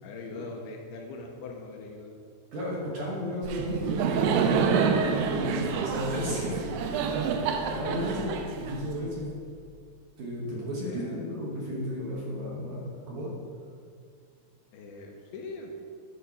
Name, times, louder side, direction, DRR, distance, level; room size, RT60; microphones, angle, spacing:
voice 1, 0.0-2.2 10.8-11.2 14.7-15.7, left 3 dB, 80° left, 1 dB, 2.5 m, -41 dB
voice 2, 2.5-5.0 5.3-6.6 7.1-7.2 7.7-9.3 10.2-13.3, equal, 60° right, -5 dB, 2.4 m, -33 dB
Laughter, 3.4-9.3, right 6 dB, 85° right, 2.8 m, -28 dB
10.5 x 4.5 x 5.6 m, 2.2 s
omnidirectional pair, 4.8 m